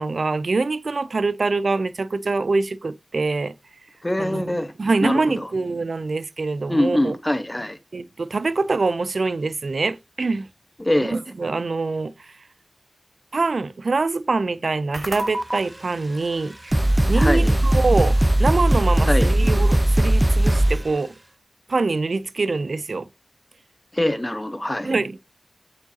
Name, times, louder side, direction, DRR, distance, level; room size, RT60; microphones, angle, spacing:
voice 1, 0.0-3.5 4.2-7.2 7.9-10.5 11.0-12.3 13.3-16.7 17.1-21.1 21.7-23.1 24.8-25.3, right 3 dB, 85° right, 0.4 m, -24 dB
voice 2, 4.0-4.7 5.0-5.5 6.7-7.8 10.8-11.1 17.1-17.5 19.1-19.3 23.9-24.9, left 1 dB, 20° left, 1.0 m, -23 dB
sound 1, 14.9-15.6 16.3-16.4 16.7-20.9, right 1 dB, 20° right, 0.6 m, -18 dB
7.6 x 5.0 x 2.7 m
wide cardioid pair, 55°, 0 cm